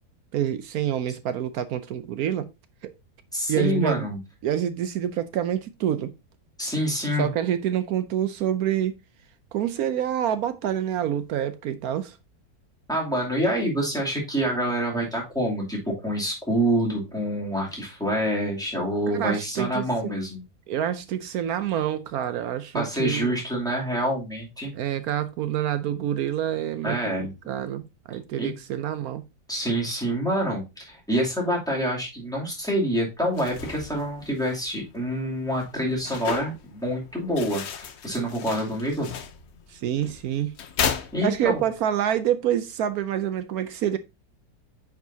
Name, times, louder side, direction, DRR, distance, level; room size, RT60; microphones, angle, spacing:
voice 1, 0.3-2.5 2.8-2.9 3.5-4.1 4.4-6.1 7.2-9.0 9.5-12.2 19.1-20.1 20.7-23.3 24.7-29.2 39.7-40.5 41.2-44.0, right 10 dB, 70° right, 1.0 m, -27 dB
voice 2, 3.3-4.2 6.6-7.3 12.9-20.4 22.7-24.8 26.8-27.3 28.4-28.5 29.5-39.1 41.1-41.6, equal, ahead, 2.6 m, -27 dB
sound 1, 33.2-41.8, left 7 dB, 60° left, 0.7 m, -35 dB
9.4 x 4.9 x 2.7 m
omnidirectional pair, 1.9 m